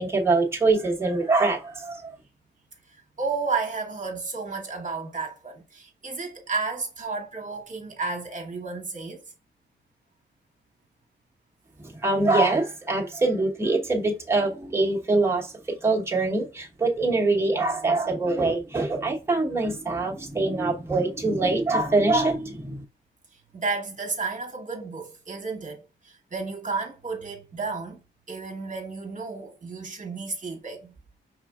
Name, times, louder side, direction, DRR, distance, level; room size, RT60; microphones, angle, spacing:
voice 1, 0.0-2.1 11.8-15.5 15.8-22.8, right 3 dB, 15° right, 1.2 m, -24 dB
voice 2, 3.2-9.2 23.5-28.0 28.3-30.9, right 4 dB, 40° right, 1.3 m, -32 dB
4.8 x 3.6 x 2.4 m
cardioid pair, 70°, 20 cm